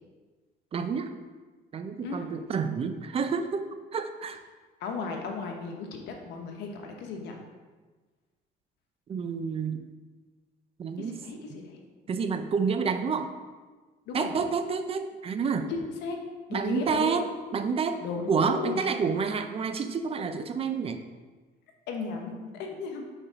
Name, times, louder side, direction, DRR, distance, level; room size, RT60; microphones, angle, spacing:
voice 1, 0.7-1.1 1.7-4.4 9.1-9.8 10.8-11.2 12.1-13.3 14.1-15.7 16.5-17.2 17.5-21.0, right 5 dB, 35° right, 9 dB, 0.5 m, -29 dB
voice 2, 4.8-7.4 11.0-11.8 14.1-14.3 15.7-16.2 16.5-17.2 18.0-19.0 21.9-23.0, left 4 dB, 85° left, 3 dB, 1.0 m, -35 dB
4.8 x 4.4 x 5.0 m, 1.3 s
cardioid pair, 110°, 17 cm